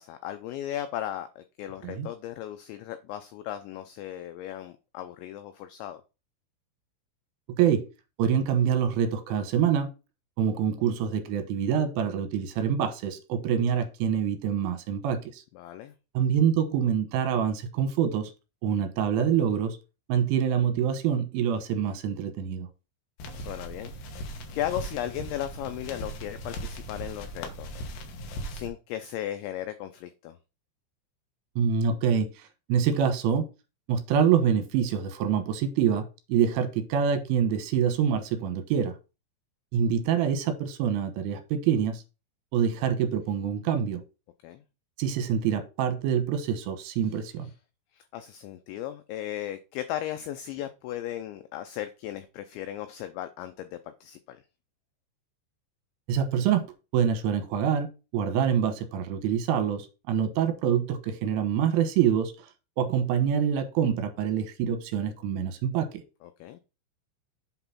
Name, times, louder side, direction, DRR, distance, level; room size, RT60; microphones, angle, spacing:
voice 1, 0.0-6.0 15.5-15.9 23.4-24.2 24.5-27.8 28.1-30.4 44.4-44.6 47.0-47.5 47.9-54.4 66.2-66.6, left 12 dB, 90° left, 2.6 m, -36 dB
voice 2, 8.2-9.9 10.4-15.4 16.2-18.3 18.6-19.8 20.1-22.7 31.6-32.3 32.7-33.5 33.9-36.1 36.3-38.9 39.7-42.0 42.5-44.0 45.0-47.5 56.1-56.7 56.9-62.5 62.8-66.0, right 8 dB, 75° right, 3.4 m, -26 dB
sound 1, 23.2-28.7, equal, 65° left, 3.0 m, -38 dB
8.2 x 3.9 x 5.7 m
omnidirectional pair, 5.9 m